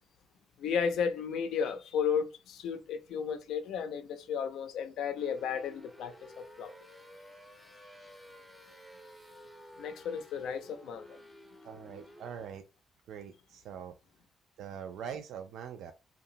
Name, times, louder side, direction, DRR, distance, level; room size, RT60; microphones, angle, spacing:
voice 1, 0.6-6.7 9.8-11.2, left 7 dB, 85° left, 0.5 m, -34 dB
sound 1, 5.1-12.5, equal, 5° left, 0.5 m, -53 dB
voice 2, 11.6-12.7 13.1-14.0 14.6-15.9, right 8 dB, 80° right, 0.3 m, -43 dB
2.8 x 2.2 x 2.6 m
cardioid pair, 135°, 0 cm